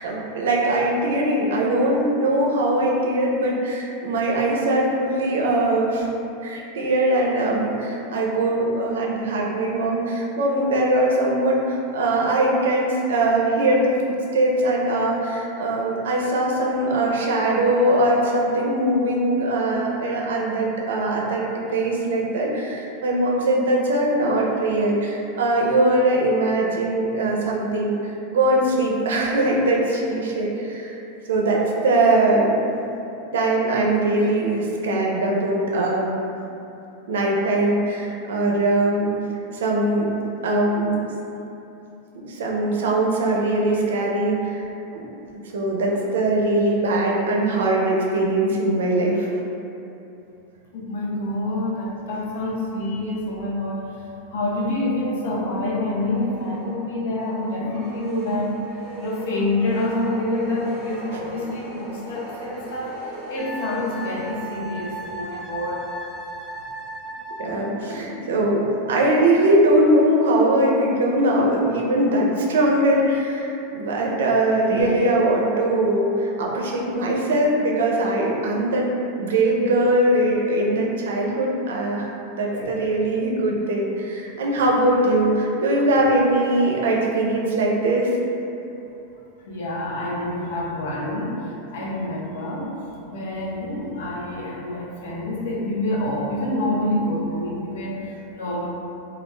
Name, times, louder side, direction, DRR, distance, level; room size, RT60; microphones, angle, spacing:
voice 1, 0.0-6.1 6.4-21.4 21.7-31.0 31.3-32.6 33.3-36.1 37.1-39.1 39.5-40.1 40.4-41.0 42.2-44.7 44.9-45.0 45.5-49.4 61.1-61.2 67.4-78.9 79.2-88.1, right 1 dB, 90° right, -2 dB, 0.4 m, -21 dB
voice 2, 50.7-53.9 54.3-63.0 63.3-65.9 74.7-74.9 82.5-82.7 89.5-92.8 93.1-98.7, left 1 dB, 75° left, -3 dB, 0.5 m, -27 dB
sound 1, 56.0-65.1, right 1 dB, 25° right, 0.9 m, -39 dB
Wind instrument woodwind instrument, 63.4-67.8, right 2 dB, 10° right, 0.3 m, -36 dB
2.3 x 2.1 x 3.1 m, 2.8 s
supercardioid pair, 135°, 0 cm